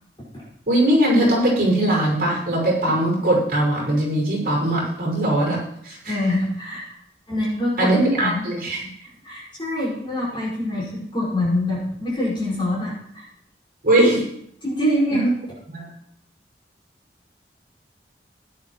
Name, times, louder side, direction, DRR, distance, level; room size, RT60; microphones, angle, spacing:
voice 1, 0.7-5.6 5.8-6.1 7.8-8.9 13.8-14.2 15.1-15.3 15.7-15.9, right 1 dB, 55° right, -4 dB, 5.9 m, -20 dB
voice 2, 6.1-6.8 7.3-7.9 8.2-8.5 9.2-13.2 14.6-15.3, left 1 dB, 30° left, -6 dB, 5.5 m, -24 dB
16.5 x 11.0 x 3.1 m, 0.71 s
head